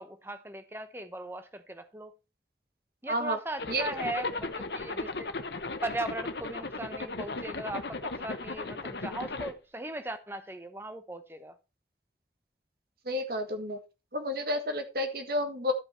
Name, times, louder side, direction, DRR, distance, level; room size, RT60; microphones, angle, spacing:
voice 1, 0.0-2.1 3.0-5.3 5.8-11.5, right 2 dB, 15° right, 0.9 m, -38 dB
voice 2, 3.1-3.4 3.7-3.8 13.1-13.8 14.1-15.7, left 1 dB, 55° right, 1.7 m, -30 dB
Zipper (clothing), 3.6-9.5, left 3 dB, 75° left, 1.2 m, -36 dB
12.5 x 5.6 x 4.5 m
head